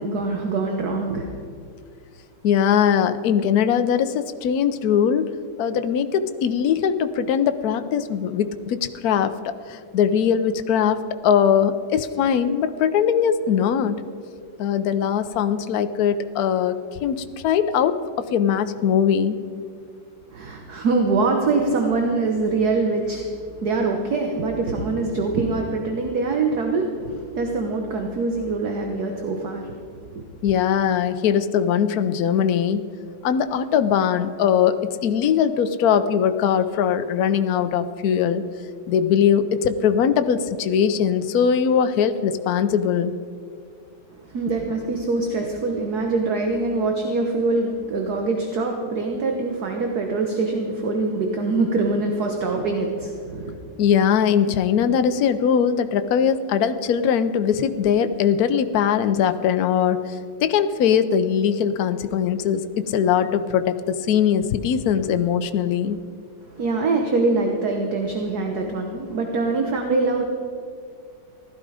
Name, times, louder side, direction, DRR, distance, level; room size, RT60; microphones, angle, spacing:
voice 1, 0.0-1.3 20.3-23.3 23.6-29.7 30.1-30.2 44.2-53.6 66.4-70.2, right 3 dB, 55° right, 3 dB, 1.5 m, -24 dB
voice 2, 2.4-5.3 5.6-14.0 14.6-18.0 18.3-19.4 30.4-32.8 33.2-38.4 38.9-43.1 53.8-66.0, left 8 dB, 70° left, 11 dB, 0.9 m, -21 dB
16.0 x 12.5 x 5.0 m, 2.3 s
omnidirectional pair, 2.3 m